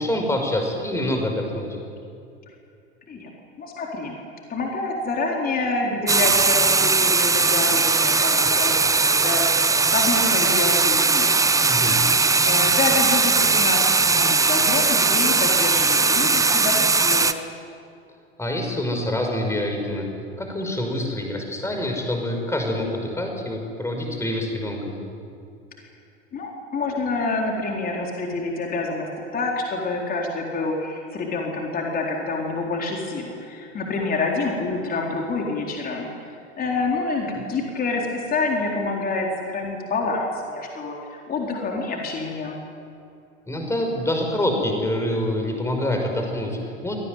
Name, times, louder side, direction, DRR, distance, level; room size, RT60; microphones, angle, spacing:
voice 1, 0.0-1.8 11.7-12.0 18.4-20.1 20.4-25.0 43.5-47.0, left 1 dB, 10° left, 3 dB, 5.6 m, -26 dB
voice 2, 3.6-4.2 4.5-11.4 11.8-12.2 12.5-17.4 25.8-25.9 26.3-36.1 36.6-42.6, left 3 dB, 25° left, 0 dB, 4.1 m, -27 dB
sound 1, 6.1-17.3, right 4 dB, 10° right, 1.0 m, -19 dB
25.5 x 18.0 x 9.3 m, 2.5 s
figure-of-eight pair, 85°, 34 cm